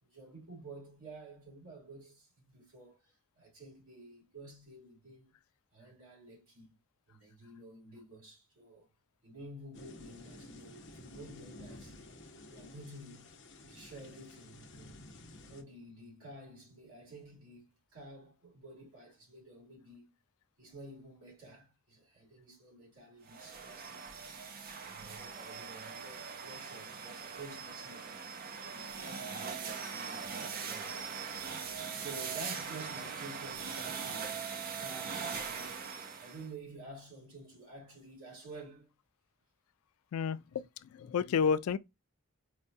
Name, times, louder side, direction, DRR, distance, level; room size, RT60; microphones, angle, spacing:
voice 1, 0.0-5.3 5.7-6.7 7.1-8.9 9.2-12.0 12.5-13.3 13.7-15.0 15.4-20.2 20.6-24.1 24.7-28.2 28.7-31.2 31.9-34.4 34.8-35.9 36.2-38.9, right 2 dB, 75° right, 2.2 m, -51 dB
sound 1, 9.7-15.6, left 2 dB, 55° left, 0.7 m, -52 dB
sound 2, 23.3-36.5, right 6 dB, 40° right, 0.5 m, -41 dB
voice 2, 40.1-41.8, left 6 dB, 75° left, 0.3 m, -31 dB
4.8 x 2.2 x 2.6 m
head